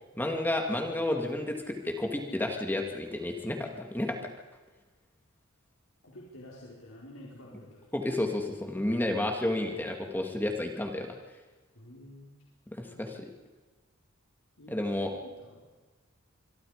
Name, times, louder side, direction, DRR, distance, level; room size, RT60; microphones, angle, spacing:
voice 1, 0.2-4.2 7.9-11.2 12.7-13.3 14.7-15.1, left 1 dB, 10° left, 2 dB, 2.4 m, -31 dB
voice 2, 6.0-8.0 11.7-12.4 12.8-13.2 14.6-15.6, left 1 dB, 80° left, -4 dB, 4.7 m, -50 dB
26.5 x 23.0 x 5.1 m, 1.3 s
head